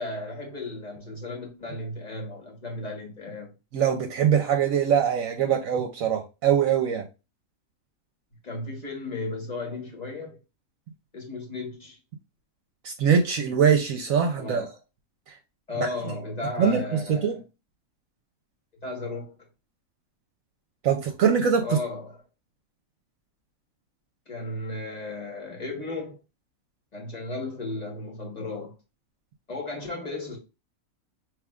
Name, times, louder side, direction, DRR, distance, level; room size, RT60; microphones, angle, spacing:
voice 1, 0.0-3.5 8.4-10.4 11.1-12.0 14.4-14.7 15.7-17.4 18.8-19.3 21.6-22.2 24.3-26.2 26.9-28.7 29.5-30.4, left 2 dB, 30° left, 1.1 m, -35 dB
voice 2, 3.7-7.0 12.8-14.6 15.8-15.9 16.6-17.4 20.8-21.6, right 7 dB, 75° right, 1.0 m, -23 dB
4.9 x 3.2 x 2.3 m
omnidirectional pair, 1.5 m